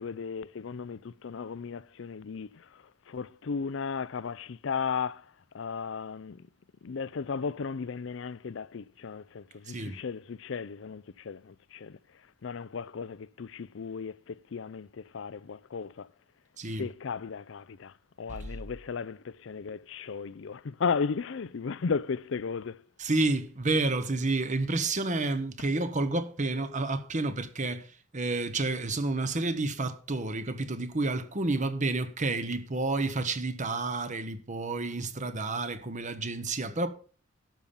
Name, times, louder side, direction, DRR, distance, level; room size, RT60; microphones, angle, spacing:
voice 1, 0.0-5.3 5.5-6.4 6.8-12.0 12.4-16.1 16.8-22.8, left 5 dB, 65° left, 0.5 m, -35 dB
voice 2, 9.7-10.0 16.6-16.9 18.3-18.5 23.0-36.9, right 2 dB, 40° right, 1.1 m, -30 dB
12.0 x 5.6 x 7.0 m
head